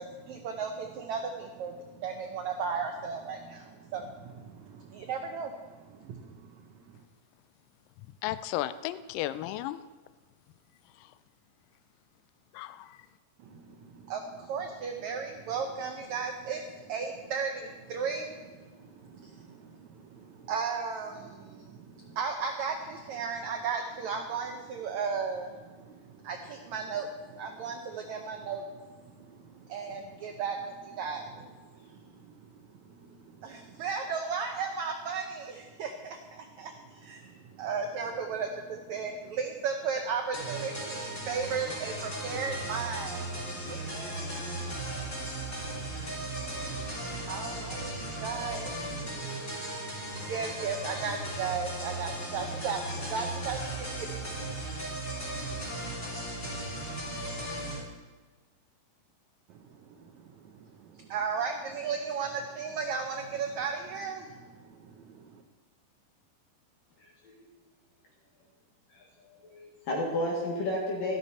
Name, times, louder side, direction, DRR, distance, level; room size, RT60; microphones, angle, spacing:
voice 1, 0.0-7.0 13.4-32.5 32.8-54.5 59.5-65.4, right 5 dB, 80° right, 3 dB, 1.6 m, -36 dB
voice 2, 8.2-9.8 11.0-11.1 12.5-13.0, left 14 dB, 90° left, 13 dB, 1.9 m, -34 dB
sound 1, 40.3-57.8, right 1 dB, 20° left, 3.2 m, -37 dB
voice 3, 67.0-67.4 68.9-69.0 69.4-71.2, left 1 dB, 65° left, -4 dB, 3.4 m, -32 dB
13.5 x 12.0 x 4.2 m, 1.4 s
omnidirectional pair, 4.4 m